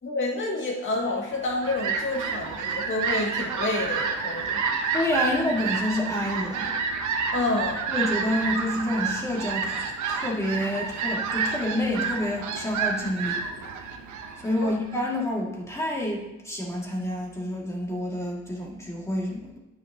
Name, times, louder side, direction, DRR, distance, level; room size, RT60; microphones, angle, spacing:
voice 1, 0.0-4.6 7.3-7.8 14.6-14.7, left 2 dB, 40° left, -3 dB, 2.1 m, -28 dB
Fowl, 1.2-15.2, right 5 dB, 75° right, 1.0 m, -30 dB
voice 2, 4.9-6.7 7.9-13.4 14.4-19.6, left 1 dB, 10° left, -3 dB, 2.2 m, -28 dB
9.7 x 6.4 x 2.9 m, 0.93 s
cardioid pair, 90°, 30 cm